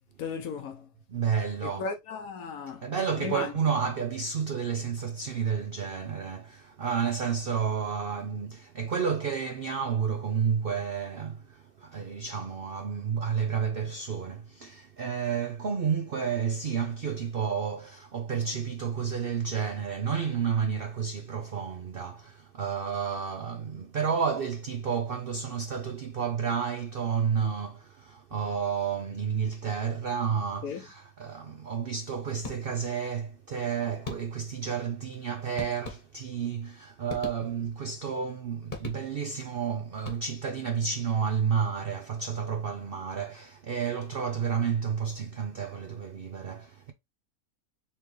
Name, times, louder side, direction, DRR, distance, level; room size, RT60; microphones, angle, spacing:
voice 1, 0.2-0.9 1.6-2.8 3.2-3.5 30.6-30.9, left 5 dB, 65° left, 1.0 m, -35 dB
voice 2, 1.1-1.9 2.8-46.9, right 7 dB, 80° right, 0.5 m, -31 dB
sound 1, 32.4-33.0 34.0-34.6 35.6-36.4 37.1-37.9 38.7-39.4 39.9-40.6, left 3 dB, 30° left, 1.1 m, -41 dB
4.3 x 3.5 x 3.1 m
omnidirectional pair, 1.8 m